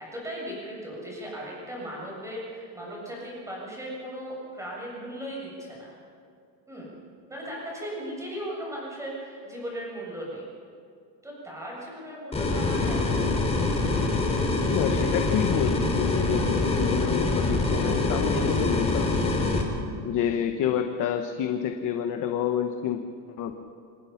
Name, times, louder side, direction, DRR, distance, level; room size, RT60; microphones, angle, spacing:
voice 1, 0.0-5.9 6.7-6.9 7.3-10.5 11.2-13.4, equal, 5° right, -4 dB, 7.4 m, -37 dB
sound 1, 12.3-19.6, left 2 dB, 10° left, 3.0 m, -25 dB
voice 2, 14.7-19.4 20.0-23.0 23.4-23.5, left 9 dB, 40° left, 5 dB, 1.1 m, -28 dB
26.5 x 18.5 x 5.8 m, 2.3 s
cardioid pair, 155°, 49 cm